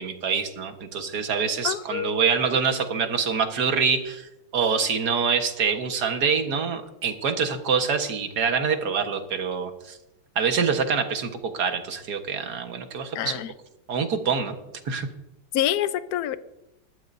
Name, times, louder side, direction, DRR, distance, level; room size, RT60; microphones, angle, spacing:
voice 1, 0.0-10.0 10.4-13.4 13.9-14.6 14.9-15.1, right 6 dB, 55° right, 1.8 m, -25 dB
voice 2, 1.6-2.2 13.1-13.5 15.5-16.4, left 11 dB, 70° left, 0.9 m, -26 dB
20.5 x 13.0 x 2.7 m
omnidirectional pair, 2.3 m